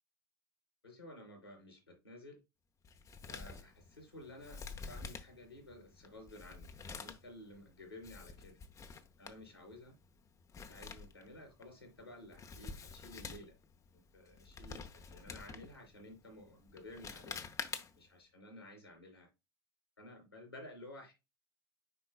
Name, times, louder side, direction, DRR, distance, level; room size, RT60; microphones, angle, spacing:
voice 1, 0.8-2.4 3.3-4.6 4.9-8.6 9.2-10.0 10.7-13.5 13.9-17.4 18.0-19.3 20.0-21.1, left 1 dB, 90° left, 3.8 m, -53 dB
Male speech man speaking, 2.8-18.2, left 5 dB, 25° left, 0.9 m, -49 dB
9.9 x 4.4 x 2.2 m
figure-of-eight pair, 75°, 13 cm